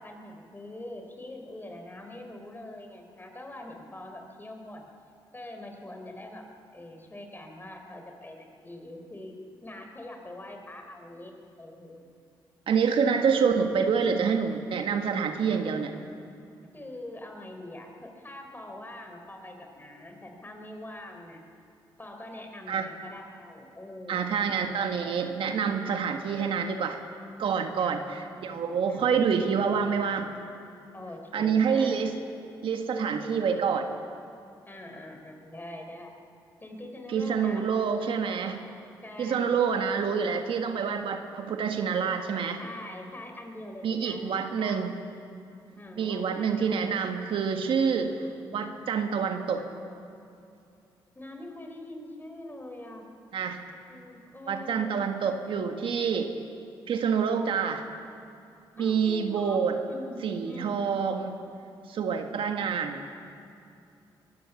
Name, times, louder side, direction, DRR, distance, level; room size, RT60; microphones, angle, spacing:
voice 1, 0.0-4.9 5.3-6.5 6.7-9.4 9.6-11.3 11.6-12.1 16.7-21.4 22.0-24.3 27.8-28.2 28.9-29.1 30.9-32.1 34.7-36.1 36.6-37.8 38.5-38.6 39.0-40.0 42.6-44.8 45.7-46.8 51.2-53.1 53.9-54.9 58.8-59.6 59.9-60.2 60.5-60.8, left 1 dB, 20° left, 4 dB, 3.9 m, -43 dB
voice 2, 12.7-15.9 22.7-22.9 24.1-27.0 27.4-30.3 31.3-32.2 32.6-33.9 37.1-38.6 39.2-42.6 43.8-45.0 45.9-49.6 53.3-53.6 54.5-56.3 56.9-57.9 58.8-59.8 60.2-61.4 61.9-63.0, right 6 dB, 70° right, 5 dB, 1.6 m, -27 dB
23.0 x 16.0 x 7.1 m, 2.6 s
supercardioid pair, 60°, 9 cm